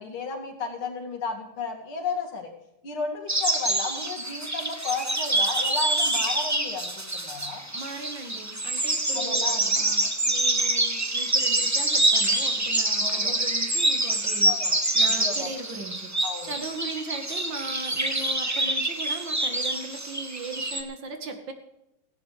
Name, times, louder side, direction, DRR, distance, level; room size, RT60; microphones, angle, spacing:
voice 1, 0.0-2.5 2.8-7.6 9.1-9.8 13.0-13.4 14.4-14.8 15.2-15.5 16.2-16.5, left 4 dB, 70° left, 1 dB, 3.1 m, -33 dB
sound 1, 3.3-20.8, right 2 dB, 15° right, 0.7 m, -26 dB
voice 2, 7.7-21.5, right 3 dB, 60° right, 5 dB, 2.0 m, -38 dB
17.5 x 16.0 x 3.3 m, 0.87 s
omnidirectional pair, 2.4 m